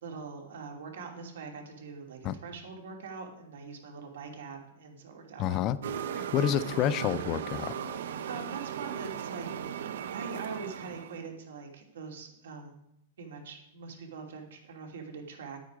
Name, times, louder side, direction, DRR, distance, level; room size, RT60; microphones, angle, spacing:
voice 1, 0.0-5.6 8.3-9.5 9.8-12.8 13.2-15.6, right 5 dB, 85° right, 2 dB, 2.7 m, -43 dB
voice 2, 5.4-5.8 6.2-8.0, left 10 dB, 30° left, 15 dB, 0.4 m, -29 dB
sound 1, 5.8-11.3, right 8 dB, 70° right, 0.7 m, -37 dB
10.5 x 9.3 x 5.0 m, 0.81 s
supercardioid pair, 165°, 0 cm